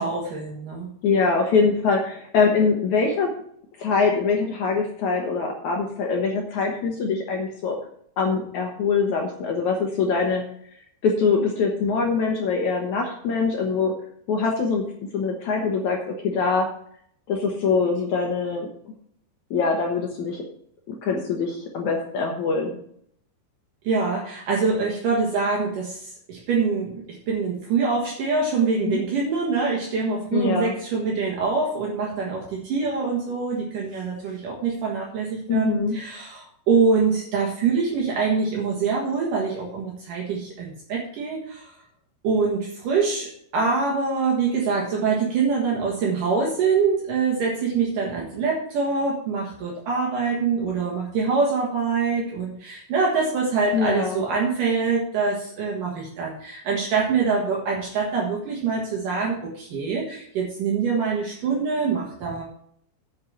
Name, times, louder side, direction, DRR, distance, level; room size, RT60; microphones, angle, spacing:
voice 1, 0.0-0.9 23.8-41.7 42.2-62.4, right 4 dB, 65° right, -2 dB, 3.0 m, -24 dB
voice 2, 1.0-3.3 3.8-7.8 8.2-10.4 10.7-13.9 14.3-14.8 15.1-16.7 17.3-18.7 19.5-20.4 20.9-22.8 28.9-29.0 30.3-30.8 35.5-36.0 53.7-54.2, left 4 dB, 65° left, 1 dB, 2.2 m, -23 dB
8.6 x 6.5 x 7.3 m, 0.66 s
omnidirectional pair, 4.4 m